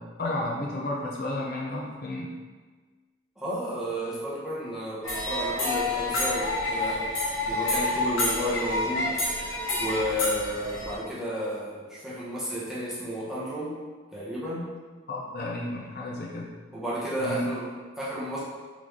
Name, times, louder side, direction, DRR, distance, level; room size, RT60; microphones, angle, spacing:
voice 1, 0.0-2.3 15.1-16.6 17.2-17.5, left 2 dB, 45° left, -3 dB, 0.5 m, -32 dB
voice 2, 3.4-7.1 7.5-13.8 14.1-14.7 16.7-18.4, equal, ahead, -8 dB, 0.9 m, -32 dB
sound 1, 5.0-11.0, left 2 dB, 70° left, 1.2 m, -28 dB
3.9 x 3.1 x 3.6 m, 1.4 s
head